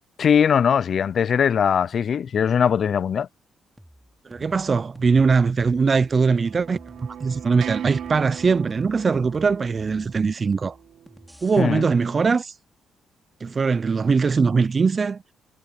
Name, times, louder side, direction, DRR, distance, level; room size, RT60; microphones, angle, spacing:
voice 1, 0.2-3.3 11.6-11.8, left 7 dB, 55° left, 0.4 m, -20 dB
sound 1, 3.8-11.6, equal, ahead, 3.3 m, -49 dB
voice 2, 4.3-6.8 7.2-10.7 11.4-12.5 13.4-15.2, right 5 dB, 35° right, 0.4 m, -21 dB
sound 2, 5.5-11.3, right 9 dB, 70° right, 3.5 m, -39 dB
cardioid pair, 90°, 0 cm